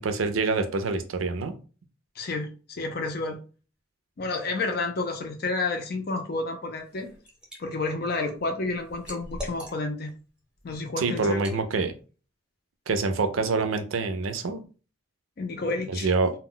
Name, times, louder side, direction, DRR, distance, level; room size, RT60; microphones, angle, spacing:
voice 1, 0.0-1.5 11.0-11.9 12.9-14.6 15.9-16.3, right 4 dB, 90° right, 7 dB, 0.5 m, -26 dB
voice 2, 2.2-3.4 4.2-7.1 7.6-10.1 10.6-11.4 15.4-16.1, left 3 dB, 50° left, 5 dB, 0.5 m, -30 dB
Liquid, 6.8-7.6 8.0-10.1 10.6-10.8 11.3-11.6, left 1 dB, 5° right, 0.7 m, -41 dB
2.2 x 2.1 x 3.7 m, 0.36 s
head